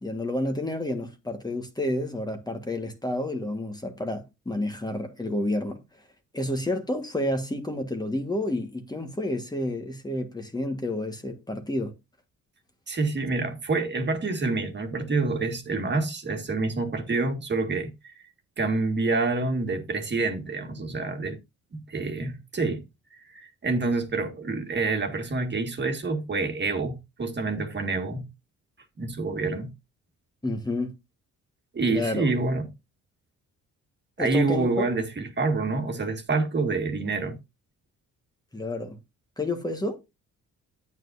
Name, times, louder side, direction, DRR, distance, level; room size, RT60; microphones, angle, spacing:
voice 1, 0.0-5.8 6.3-11.9 30.4-31.0 31.9-32.3 34.2-34.9 38.5-39.0 39.4-40.0, left 1 dB, 15° left, 1.5 m, -30 dB
voice 2, 12.9-18.1 18.6-21.4 21.7-22.8 23.3-28.3 29.0-29.7 31.7-32.7 34.2-37.4, right 3 dB, 35° right, 1.9 m, -27 dB
9.2 x 8.9 x 2.7 m
cardioid pair, 90°, 30 cm